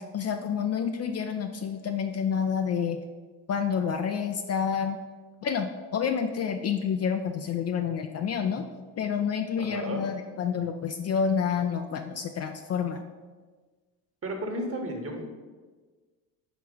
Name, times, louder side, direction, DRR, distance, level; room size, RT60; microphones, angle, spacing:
voice 1, 0.0-3.0 3.5-5.0 5.4-8.7 9.0-13.0, left 7 dB, 40° left, 6 dB, 0.5 m, -29 dB
voice 2, 9.6-10.0 14.2-15.2, right 1 dB, 30° right, 3 dB, 1.4 m, -33 dB
4.9 x 4.5 x 5.3 m, 1.4 s
supercardioid pair, 75°, 42 cm